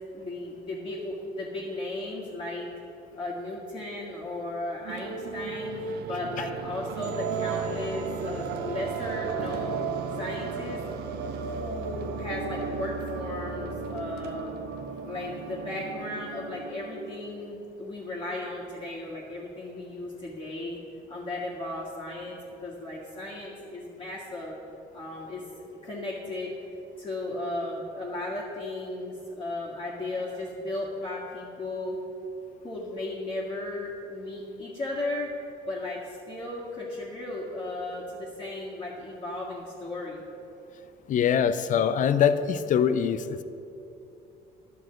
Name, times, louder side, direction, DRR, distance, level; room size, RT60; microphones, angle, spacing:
voice 1, 0.1-2.7 3.1-9.8 10.2-10.8 11.4-14.6 15.0-20.8 21.1-24.5 24.9-25.4 25.7-26.5 27.0-32.0 32.6-35.3 35.7-40.2, left 2 dB, 30° left, -5 dB, 1.7 m, -35 dB
sound 1, 4.8-17.8, right 5 dB, 75° right, 0.7 m, -34 dB
voice 2, 41.1-43.4, left 8 dB, 50° left, 12 dB, 0.5 m, -23 dB
11.0 x 4.7 x 7.7 m, 2.7 s
cardioid pair, 110°, 17 cm